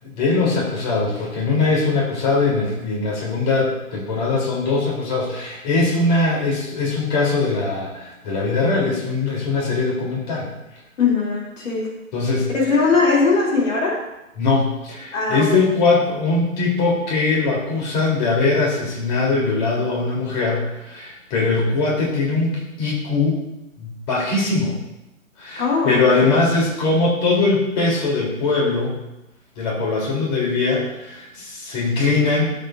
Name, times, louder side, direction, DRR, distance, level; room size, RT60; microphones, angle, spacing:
voice 1, 0.0-10.5 12.1-12.5 14.4-23.4 23.8-24.8 25.4-29.0 29.6-32.5, left 3 dB, 35° left, -4 dB, 3.6 m, -21 dB
voice 2, 11.0-11.9 12.5-14.0 15.1-15.6 25.6-26.4, left 4 dB, 65° left, -3 dB, 3.2 m, -20 dB
14.0 x 8.4 x 2.7 m, 0.93 s
hypercardioid pair, 140°, 41 cm